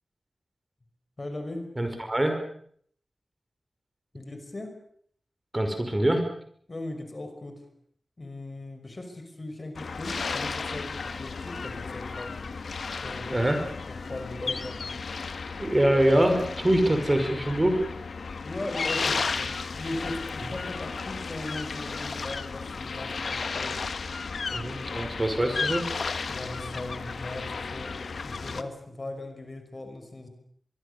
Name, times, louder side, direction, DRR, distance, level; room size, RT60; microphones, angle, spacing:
voice 1, 1.2-1.7 4.1-4.8 6.7-7.6 8.2-12.4 12.9-13.5 13.8-14.9 18.4-23.8 26.3-30.3, left 2 dB, 40° left, 6 dB, 5.6 m, -38 dB
voice 2, 1.8-2.4 5.5-6.2 13.3-13.6 15.6-17.9 24.5-25.9, right 1 dB, 25° right, 6 dB, 5.4 m, -24 dB
sound 1, 9.8-28.6, left 4 dB, 80° left, 1.4 m, -34 dB
24.0 x 23.0 x 6.9 m, 0.62 s
wide cardioid pair, 70°, 0 cm